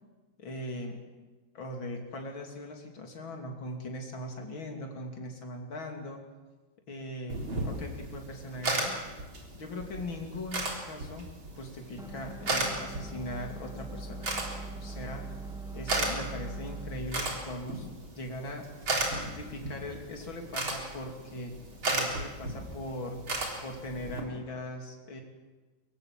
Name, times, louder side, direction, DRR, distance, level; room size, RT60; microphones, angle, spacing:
voice 1, 0.4-1.0 1.5-6.2 6.9-7.4 7.6-9.0 9.5-11.3 11.6-14.3 14.8-15.3 15.7-17.9 18.1-18.7 19.1-21.5 21.9-23.2 23.6-25.2, left 1 dB, 80° left, 2 dB, 3.7 m, -40 dB
sound 1, 7.3-24.2, right 2 dB, 85° right, 4.6 m, -36 dB
sound 2, 12.0-19.1, right 2 dB, 5° right, 0.3 m, -43 dB
23.5 x 21.5 x 7.5 m, 1.2 s
omnidirectional pair, 2.1 m